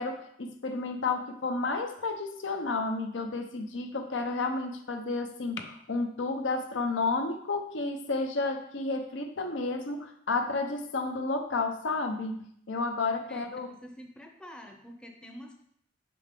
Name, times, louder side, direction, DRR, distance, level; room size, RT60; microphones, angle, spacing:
voice 1, 0.0-13.7, left 3 dB, 80° left, 5 dB, 0.7 m, -31 dB
voice 2, 13.3-15.5, equal, 5° left, 2 dB, 0.6 m, -47 dB
5.6 x 5.2 x 3.7 m, 0.68 s
head